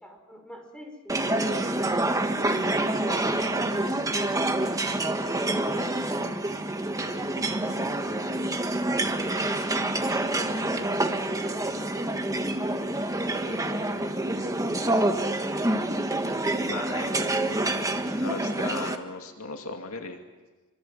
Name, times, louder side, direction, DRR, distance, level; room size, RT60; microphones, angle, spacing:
voice 1, 0.0-2.9 3.5-8.8 9.4-12.8 13.2-17.1 17.9-18.7, equal, 5° left, 2 dB, 5.7 m, -45 dB
sound 1, 1.1-19.0, right 1 dB, 15° right, 1.6 m, -27 dB
voice 2, 16.6-17.3 17.7-20.2, left 3 dB, 75° left, 4 dB, 2.5 m, -37 dB
28.0 x 25.0 x 7.7 m, 1.2 s
head